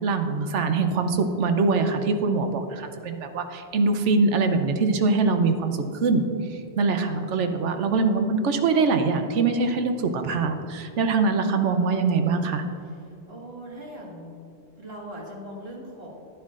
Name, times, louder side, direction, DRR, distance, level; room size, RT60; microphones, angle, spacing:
voice 1, 0.0-6.2 6.8-12.6, right 4 dB, 80° right, 7 dB, 1.0 m, -23 dB
voice 2, 6.9-7.3 11.4-12.0 12.8-14.4 14.8-16.1, equal, 60° right, -3 dB, 2.0 m, -41 dB
11.0 x 9.8 x 2.5 m, 2.6 s
omnidirectional pair, 1.2 m